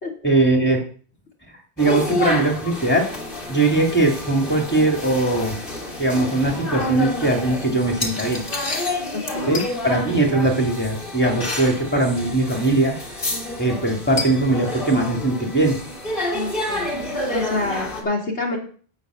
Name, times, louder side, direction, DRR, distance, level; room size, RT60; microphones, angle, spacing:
voice 1, 0.2-0.8 1.8-3.0 3.5-5.5 6.0-8.4 9.5-12.9 13.6-15.8, right 2 dB, 10° left, 2 dB, 2.3 m, -20 dB
sound 1, 1.8-18.0, left 2 dB, 50° left, 2.4 m, -29 dB
voice 2, 9.1-9.6 16.3-16.9 17.3-18.6, left 2 dB, 80° left, 0 dB, 2.9 m, -27 dB
11.5 x 4.9 x 8.2 m, 0.43 s
omnidirectional pair, 1.1 m